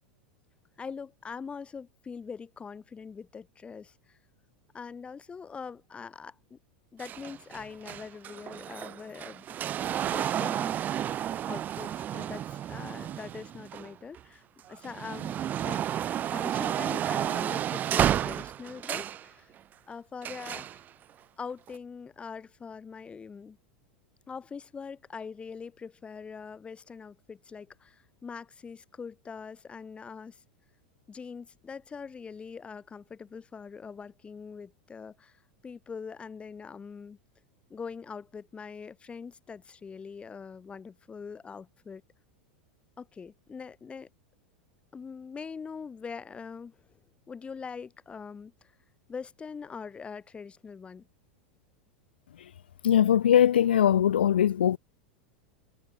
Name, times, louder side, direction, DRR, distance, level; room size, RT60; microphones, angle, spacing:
voice 1, 0.8-4.2 4.7-6.6 6.9-9.5 10.0-10.8 11.5-15.9 16.3-19.5 19.9-20.8 21.4-23.6 24.3-30.4 31.1-37.2 37.7-42.0 43.0-44.1 44.9-47.0 47.3-48.7 49.1-51.1, left 5 dB, 20° left, 3.7 m, -43 dB
sound 1, 7.0-14.2 14.7-19.2 20.2-20.8 21.7-21.8, right 10 dB, 35° right, 0.6 m, -31 dB
voice 2, 52.8-54.8, left 10 dB, 80° left, 0.6 m, -21 dB
hypercardioid pair, 95°, 5 cm